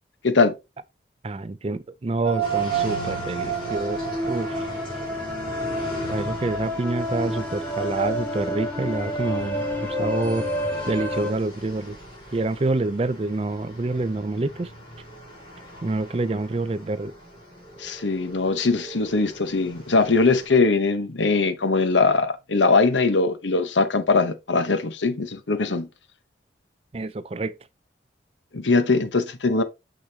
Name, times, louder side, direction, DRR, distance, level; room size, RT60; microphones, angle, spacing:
voice 1, 0.2-0.5 17.8-25.9 28.5-29.6, left 3 dB, 90° left, 1.0 m, -21 dB
voice 2, 1.2-4.7 6.1-10.5 10.9-12.0 12.3-14.7 15.8-17.1 26.9-27.6, right 2 dB, 30° right, 0.4 m, -27 dB
sound 1, 2.2-11.3, right 1 dB, 10° left, 2.0 m, -28 dB
sound 2, 2.4-20.5, equal, 25° left, 4.3 m, -40 dB
6.4 x 6.4 x 2.8 m
head